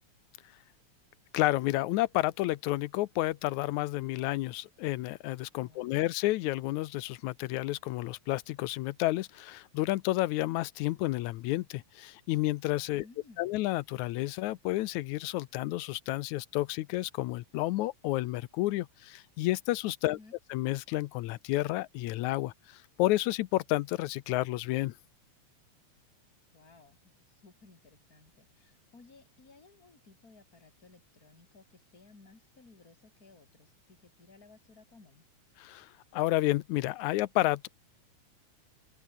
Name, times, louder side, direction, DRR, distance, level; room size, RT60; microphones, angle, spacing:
voice 1, 1.3-13.0 13.4-20.2 20.5-24.9 35.6-37.7, left 17 dB, 85° left, 2.1 m, -31 dB
voice 2, 5.6-6.0 12.9-13.5 20.0-20.4 26.5-35.2, left 3 dB, 30° left, 4.8 m, -58 dB
open air
omnidirectional pair, 3.3 m